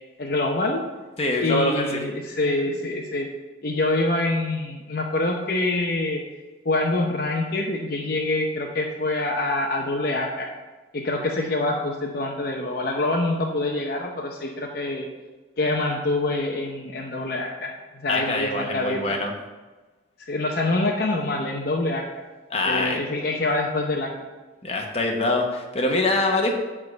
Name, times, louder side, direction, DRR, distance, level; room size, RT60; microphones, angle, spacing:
voice 1, 0.2-0.8 1.4-3.3 3.6-6.2 6.6-10.5 10.9-15.1 15.6-19.2 20.3-22.0 22.6-24.1, left 2 dB, 50° left, 0 dB, 0.8 m, -25 dB
voice 2, 1.2-2.0 2.4-2.7 18.1-19.3 22.5-23.0 24.6-26.5, left 2 dB, 30° left, 2 dB, 1.1 m, -24 dB
9.6 x 3.7 x 6.5 m, 1.2 s
head